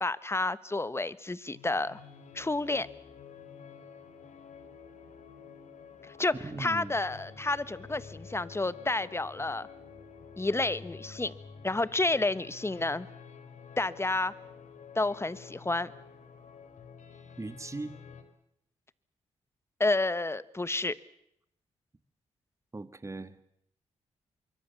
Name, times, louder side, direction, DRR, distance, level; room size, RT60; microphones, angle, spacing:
voice 1, 0.0-2.0 2.3-2.9 6.2-9.7 10.4-11.3 11.6-13.1 13.8-14.3 14.9-15.9 19.8-21.0, left 2 dB, 20° left, 17 dB, 1.3 m, -30 dB
sound 1, 1.5-18.2, left 6 dB, 70° left, 3.4 m, -50 dB
voice 2, 6.3-7.0 17.4-18.0 22.7-23.4, right 2 dB, 25° right, 12 dB, 1.9 m, -39 dB
25.5 x 23.5 x 7.2 m, 0.74 s
supercardioid pair, 55°, 13 cm